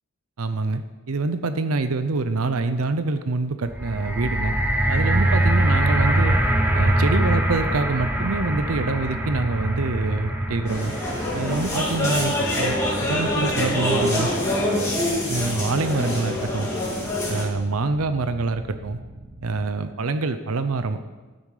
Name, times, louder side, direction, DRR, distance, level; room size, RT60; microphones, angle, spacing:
voice 1, 0.4-0.8 1.1-4.5 4.9-6.3 6.7-10.9 11.3-12.7 13.0-14.3 15.3-16.7 17.3-19.0 19.4-21.1, right 3 dB, 90° right, 10 dB, 0.7 m, -25 dB
sound 1, 3.6-13.9 14.6-14.7, right 1 dB, 10° right, 0.9 m, -23 dB
sound 2, 5.5-19.7, right 1 dB, 55° right, 1.3 m, -41 dB
sound 3, 10.7-17.4, left 1 dB, 15° left, 3.1 m, -25 dB
12.5 x 9.1 x 4.9 m, 1.2 s
head